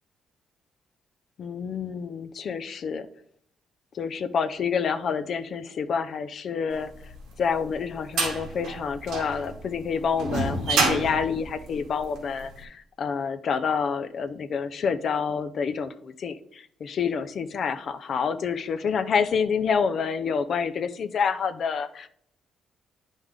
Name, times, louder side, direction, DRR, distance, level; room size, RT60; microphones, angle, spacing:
voice 1, 1.4-3.1 3.9-7.1 7.4-22.1, left 6 dB, 55° left, 9 dB, 0.5 m, -28 dB
sound 1, 7.1-12.4, right 3 dB, 85° right, 2.1 m, -28 dB
9.2 x 5.4 x 3.5 m, 0.67 s
cardioid pair, 90°, 0 cm